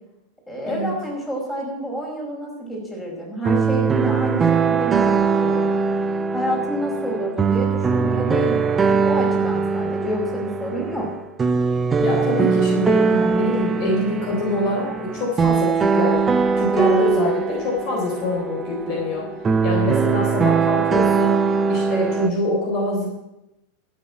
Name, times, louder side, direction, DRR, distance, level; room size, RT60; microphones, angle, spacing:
voice 1, 0.5-5.6 6.3-11.1, right 1 dB, 10° left, -2 dB, 5.1 m, -28 dB
sound 1, 3.4-22.3, right 5 dB, 20° right, 0.8 m, -21 dB
voice 2, 12.0-16.2 16.6-19.3 19.6-21.4 21.7-23.1, left 2 dB, 40° left, -1 dB, 3.7 m, -24 dB
13.0 x 7.5 x 9.1 m, 0.92 s
figure-of-eight pair, 90°, 0 cm